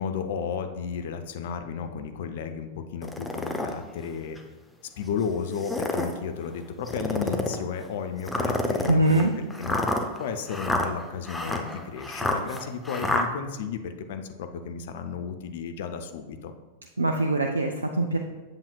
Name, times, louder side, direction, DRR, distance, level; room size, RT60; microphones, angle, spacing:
voice 1, 0.0-4.4 5.0-16.5, left 6 dB, 55° left, 7 dB, 0.5 m, -33 dB
sound 1, 3.0-3.7 4.4-4.5 5.5-6.2 6.9-7.6 8.3-13.3, left 1 dB, 5° left, 0.6 m, -28 dB
voice 2, 8.9-9.3 17.0-18.2, right 1 dB, 75° right, 3 dB, 0.4 m, -23 dB
7.8 x 7.2 x 2.3 m, 1.2 s
figure-of-eight pair, 90°, 0 cm